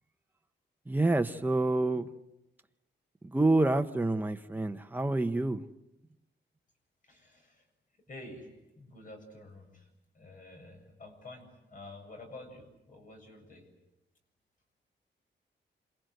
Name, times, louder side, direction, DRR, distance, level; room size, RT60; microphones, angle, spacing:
voice 1, 0.9-2.1 3.2-5.6, right 2 dB, 10° right, 7 dB, 0.9 m, -27 dB
voice 2, 7.0-7.7 8.1-9.9 10.1-13.7, left 2 dB, 45° left, 4 dB, 7.6 m, -49 dB
27.5 x 27.5 x 7.9 m, 0.92 s
wide cardioid pair, 180°, 19 cm